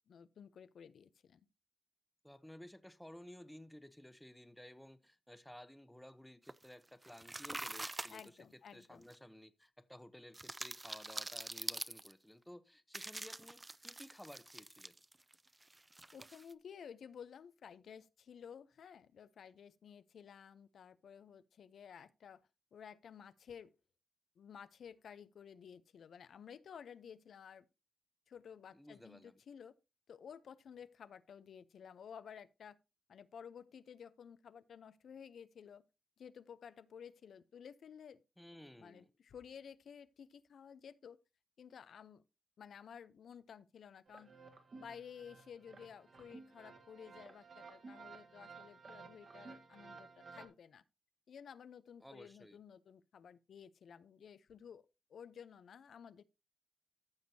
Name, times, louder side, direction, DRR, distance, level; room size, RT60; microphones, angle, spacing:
voice 1, 0.1-1.4 8.1-9.0 16.1-22.4 22.7-23.7 24.4-27.7 28.3-29.7 30.1-32.8 33.1-35.8 36.2-38.2 38.8-41.2 41.6-42.2 42.6-44.3 44.7-50.8 51.3-56.2, left 7 dB, 90° left, 0.5 m, -54 dB
voice 2, 2.2-8.4 8.7-14.9 28.7-29.3 38.4-39.1 52.0-52.6, left 1 dB, 5° left, 0.7 m, -55 dB
sound 1, 6.5-6.7 7.0-8.3 9.1-9.2 10.3-12.1 12.9-15.3 15.6-16.5, right 2 dB, 20° right, 0.4 m, -45 dB
sound 2, 44.1-50.5, right 4 dB, 50° right, 1.6 m, -55 dB
14.5 x 6.2 x 2.7 m
wide cardioid pair, 140°, 0 cm